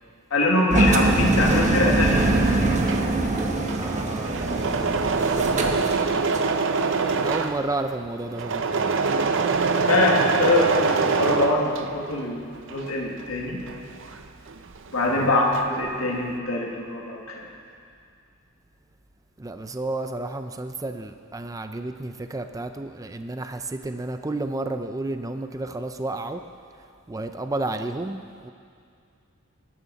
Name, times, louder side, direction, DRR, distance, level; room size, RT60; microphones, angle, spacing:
voice 1, 0.3-2.8 9.7-13.6 14.9-17.4, left 2 dB, 80° left, -2 dB, 2.0 m, -24 dB
Engine, 0.7-6.5, right 2 dB, 35° right, 1.2 m, -23 dB
Engine / Mechanisms, 2.6-12.2 12.6-14.9 15.2-15.9, right 4 dB, 60° right, 0.7 m, -25 dB
voice 2, 3.8-4.4 7.1-9.0 15.1-15.3 19.4-26.4 27.1-28.5, right 2 dB, 15° right, 7 dB, 0.5 m, -31 dB
21.5 x 12.0 x 4.1 m, 2.3 s
head